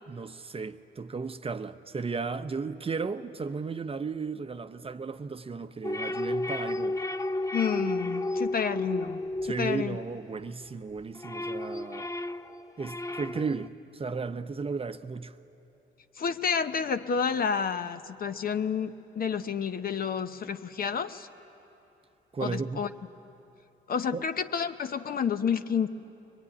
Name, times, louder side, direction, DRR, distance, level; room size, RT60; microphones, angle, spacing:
voice 1, 0.1-7.0 9.4-12.1 12.8-15.4 22.3-22.8 24.1-24.3, right 4 dB, 30° right, 0.7 m, -35 dB
sound 1, 5.8-10.5 10.9-13.7, left 1 dB, 15° left, 0.6 m, -33 dB
voice 2, 7.5-10.0 16.2-21.3 22.4-22.9 23.9-25.9, left 6 dB, 50° left, 0.9 m, -30 dB
23.5 x 21.5 x 9.8 m
cardioid pair, 90°, 20 cm